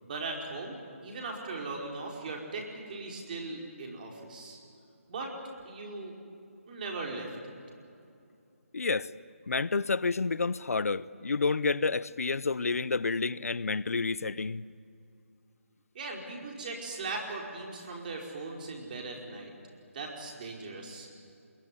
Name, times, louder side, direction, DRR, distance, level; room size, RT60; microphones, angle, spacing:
voice 1, 0.0-4.6 5.1-5.3 5.6-6.1 6.7-7.3 15.9-19.5 19.9-21.1, right 3 dB, 35° right, 5.1 m, -39 dB
voice 2, 8.7-9.1 9.5-14.6, left 4 dB, 80° left, 0.7 m, -29 dB
23.5 x 22.5 x 9.9 m
hypercardioid pair, 165°, 8 cm